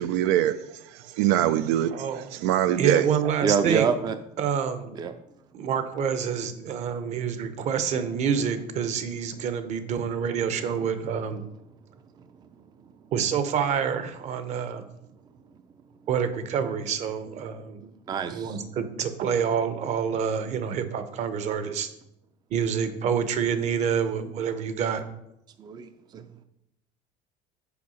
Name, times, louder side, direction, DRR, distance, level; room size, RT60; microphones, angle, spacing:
voice 1, 0.0-3.0, right 12 dB, 85° right, 0.4 m, -24 dB
voice 2, 1.9-2.3 2.8-3.9 4.4-5.0 5.5-11.4 13.1-14.8 16.1-17.9 18.3-21.9 22.5-25.0, right 7 dB, 45° right, 0.9 m, -27 dB
voice 3, 3.4-4.2 5.0-5.1 18.1-18.6 25.6-26.2, right 6 dB, 25° right, 0.4 m, -26 dB
6.9 x 4.7 x 6.3 m
cardioid pair, 145°, 16 cm